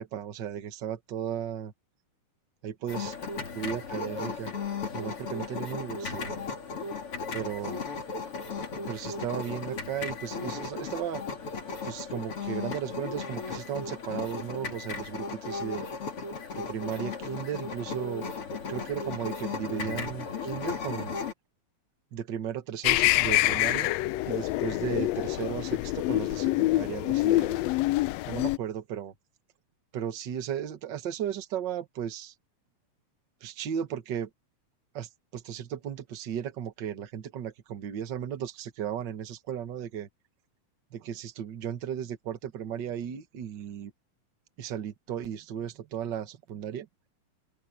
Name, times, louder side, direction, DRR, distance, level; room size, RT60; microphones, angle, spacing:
voice 1, 0.0-1.7 2.6-3.1 3.5-4.5 4.9-6.4 7.3-7.8 8.8-11.2 11.8-15.8 16.5-18.3 18.7-21.2 22.1-24.0 24.3-27.6 28.3-29.1 29.9-32.3 33.4-34.3 34.9-40.1 40.9-43.9 44.6-46.9, right 9 dB, 45° right, 1.6 m, -35 dB
sound 1, 2.9-21.3, left 4 dB, 45° left, 3.5 m, -36 dB
sound 2, 22.8-28.6, left 18 dB, 85° left, 1.5 m, -26 dB
open air
omnidirectional pair, 3.5 m